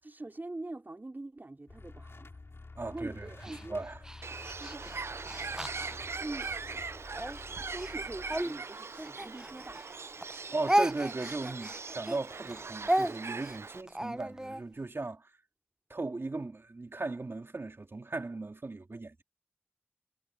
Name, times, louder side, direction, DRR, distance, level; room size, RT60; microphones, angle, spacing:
voice 1, 0.0-3.9 4.6-4.9 5.4-7.1 7.6-9.8, right 2 dB, 45° right, 4.6 m, -44 dB
sound 1, 1.7-11.6, left 3 dB, 75° left, 3.2 m, -51 dB
voice 2, 2.8-3.3 3.7-4.0 10.5-15.3 15.9-19.2, right 3 dB, 65° right, 2.9 m, -37 dB
Speech, 3.4-6.6 7.1-9.9 10.2-14.6, right 1 dB, 15° right, 0.6 m, -34 dB
Bird, 4.2-13.8, right 4 dB, 80° right, 0.4 m, -41 dB
wide cardioid pair, 45°, 4 cm